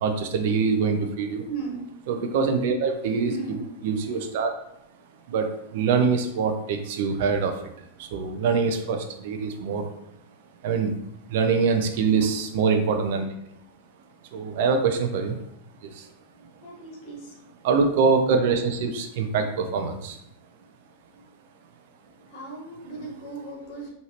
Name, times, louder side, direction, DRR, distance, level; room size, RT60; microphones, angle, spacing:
voice 1, 0.0-1.4 2.1-3.6 3.8-4.5 5.3-7.6 8.0-9.9 10.6-10.9 11.3-13.3 14.3-15.4 15.8-16.1 17.6-20.2, right 5 dB, 50° right, 5 dB, 0.6 m, -24 dB
voice 2, 1.5-1.8 3.3-3.6 12.1-12.5 16.6-17.3 22.3-23.9, right 4 dB, 40° left, -2 dB, 1.4 m, -37 dB
4.8 x 2.7 x 2.9 m, 0.76 s
figure-of-eight pair, 90°, 0 cm